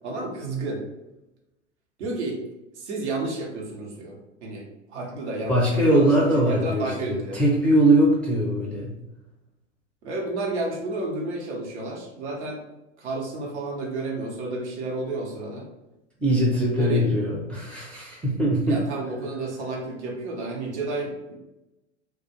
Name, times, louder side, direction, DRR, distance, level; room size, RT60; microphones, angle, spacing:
voice 1, 0.0-0.8 2.0-2.4 2.8-7.4 10.0-12.6 13.0-15.7 16.8-17.1 18.7-21.4, right 2 dB, 65° right, -1 dB, 0.8 m, -31 dB
voice 2, 5.5-8.9 16.2-18.8, right 1 dB, 5° left, -7 dB, 0.5 m, -21 dB
2.3 x 2.1 x 2.8 m, 0.96 s
figure-of-eight pair, 90°, 36 cm